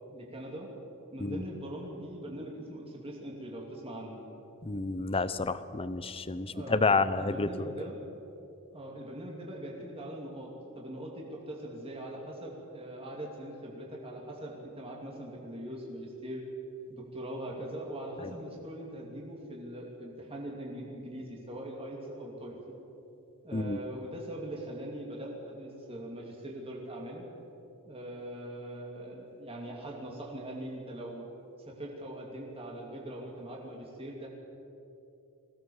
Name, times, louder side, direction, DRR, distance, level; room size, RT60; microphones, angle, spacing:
voice 1, 0.1-0.7 1.1-4.2 6.5-8.0 8.7-16.4 16.9-22.8 23.4-27.2 27.9-31.3 31.7-34.3, right 1 dB, 25° right, -2 dB, 2.7 m, -41 dB
voice 2, 4.6-7.7 23.5-23.8, left 3 dB, 25° left, 14 dB, 0.7 m, -29 dB
21.5 x 17.0 x 7.2 m, 2.9 s
head